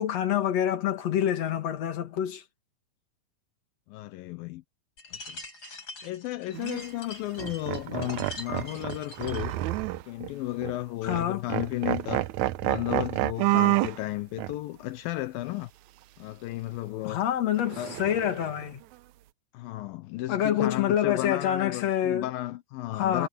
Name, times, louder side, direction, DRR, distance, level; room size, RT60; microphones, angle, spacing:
voice 1, 0.0-2.4 11.0-11.4 17.0-18.8 20.3-22.3 22.9-23.3, left 10 dB, 50° left, 3.0 m, -27 dB
voice 2, 3.9-4.6 5.1-5.4 6.0-9.5 10.1-12.3 12.6-15.7 16.2-17.2 17.7-18.0 19.5-23.3, left 16 dB, 80° left, 2.6 m, -34 dB
sound 1, 5.0-9.5, left 2 dB, 30° left, 7.3 m, -44 dB
sound 2, 6.5-6.8 7.4-10.3 10.6-10.8 11.1-11.3 11.5-14.0 14.4-14.5 17.7-18.6, right 17 dB, 85° right, 1.7 m, -29 dB
omnidirectional pair, 4.1 m